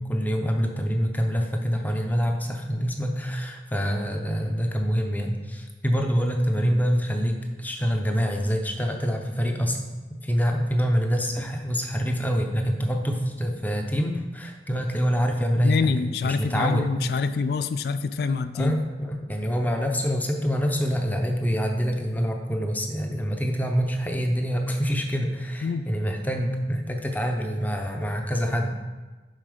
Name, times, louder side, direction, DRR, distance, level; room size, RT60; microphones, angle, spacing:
voice 1, 0.0-9.8 10.1-16.0 16.2-16.9 17.2-17.3 18.5-28.8, equal, 10° left, 3 dB, 0.7 m, -26 dB
voice 2, 15.6-18.8 25.6-25.9, left 5 dB, 60° left, 12 dB, 0.3 m, -26 dB
7.5 x 5.6 x 5.0 m, 1.3 s
head